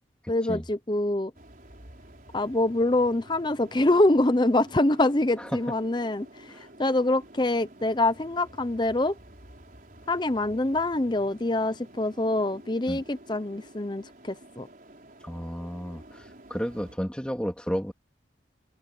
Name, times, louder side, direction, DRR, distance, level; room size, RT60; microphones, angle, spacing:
voice 1, 0.3-1.3 2.3-6.3 6.8-9.1 10.1-14.7, left 2 dB, 25° left, 0.7 m, -25 dB
sound 1, 1.3-17.0, right 1 dB, 45° right, 5.2 m, -50 dB
voice 2, 15.2-17.9, equal, 5° left, 3.2 m, -32 dB
open air
head